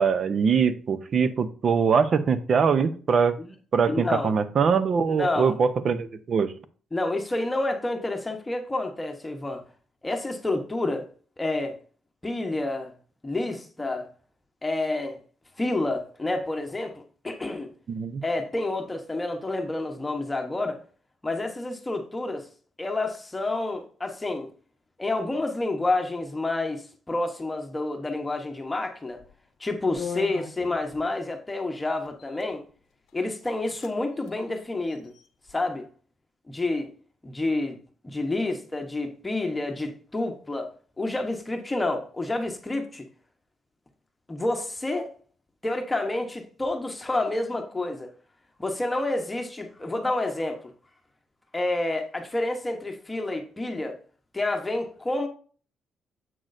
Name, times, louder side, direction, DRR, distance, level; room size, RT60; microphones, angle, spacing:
voice 1, 0.0-3.3 3.7-6.5 17.9-18.2, right 6 dB, 50° right, 0.6 m, -23 dB
voice 2, 3.9-4.3 5.2-5.6 6.9-9.6 10.0-11.1 11.4-11.8 12.2-12.9 13.2-14.1 14.6-15.2 15.6-17.7 18.2-20.8 21.2-22.5 22.8-24.5 25.0-29.2 29.6-32.6 33.1-35.1 35.5-35.9 36.5-36.9 37.2-37.8 38.0-40.7 41.0-43.0 44.3-45.1 45.6-48.1 48.6-50.6 51.5-54.0 54.3-55.3, left 2 dB, 15° left, 1.0 m, -29 dB
sound 1, 29.1-29.4 30.0-31.1 32.1-32.5 33.1-33.2 33.4-33.9 34.2-34.3 34.8-35.5, left 6 dB, 80° left, 0.7 m, -39 dB
7.6 x 6.1 x 2.6 m
cardioid pair, 90°, 0 cm